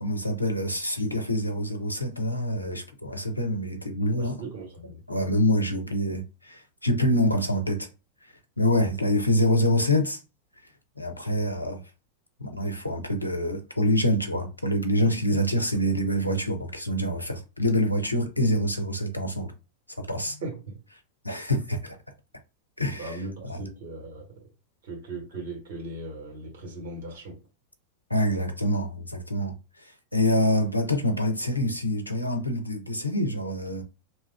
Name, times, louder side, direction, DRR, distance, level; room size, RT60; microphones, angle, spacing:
voice 1, 0.0-4.4 5.1-7.9 8.2-10.2 11.0-11.8 12.4-19.5 20.1-20.4 21.2-22.0 22.8-23.2 23.5-23.7 28.1-33.8, left 1 dB, 85° left, 0.6 m, -26 dB
voice 2, 4.2-5.0 20.1-20.7 23.0-24.3 24.8-27.4, right 2 dB, 60° right, 1.6 m, -38 dB
2.8 x 2.3 x 3.3 m
figure-of-eight pair, 90°, 0 cm